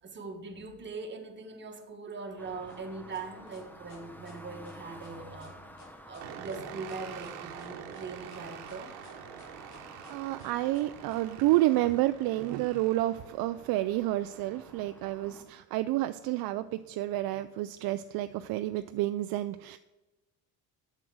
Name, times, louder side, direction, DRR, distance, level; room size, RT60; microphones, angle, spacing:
voice 1, 0.0-5.6 6.1-8.9, right 4 dB, 25° right, 4 dB, 1.6 m, -41 dB
sound 1, 2.4-15.4, equal, 5° left, 1.0 m, -52 dB
sound 2, 2.7-11.2, left 3 dB, 65° left, 3.6 m, -56 dB
sound 3, 6.2-14.9, right 9 dB, 90° right, 1.1 m, -47 dB
voice 2, 10.1-19.8, right 16 dB, 60° right, 11 dB, 0.5 m, -29 dB
7.7 x 7.5 x 6.3 m, 1.1 s
supercardioid pair, 105°, 40 cm